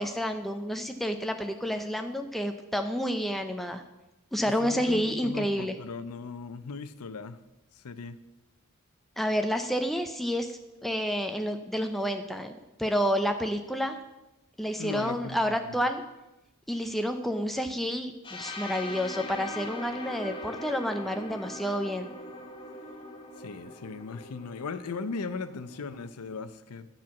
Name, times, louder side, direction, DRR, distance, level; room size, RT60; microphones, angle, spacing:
voice 1, 0.0-3.8 4.3-5.7 9.2-14.0 14.6-16.0 16.7-22.1, equal, ahead, 6 dB, 0.5 m, -29 dB
voice 2, 4.5-7.4 7.7-8.2 14.8-15.7 23.4-26.9, left 4 dB, 85° left, 13 dB, 0.6 m, -38 dB
sound 1, 18.2-26.1, left 2 dB, 20° left, 0.9 m, -41 dB
9.9 x 4.5 x 7.2 m, 0.96 s
head